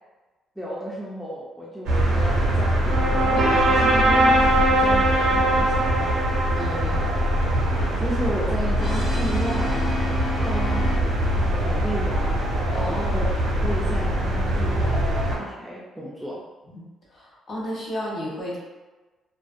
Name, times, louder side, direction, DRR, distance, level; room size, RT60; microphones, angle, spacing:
voice 1, 0.6-6.3 7.9-9.8 10.4-10.9 11.3-12.5 12.8-16.4, right 1 dB, ahead, -7 dB, 0.4 m, -33 dB
sound 1, 1.8-15.4, equal, 85° right, 0.6 m, -23 dB
sound 2, 2.2-8.1, right 1 dB, 45° right, 0.6 m, -22 dB
voice 2, 6.5-7.1 12.7-13.3 16.7-16.8 17.1-18.6, equal, 40° left, -6 dB, 1.0 m, -32 dB
Brass instrument, 7.7-11.5, equal, 65° left, 0.7 m, -32 dB
2.4 x 2.0 x 2.5 m, 1.2 s
cardioid pair, 120°, 0 cm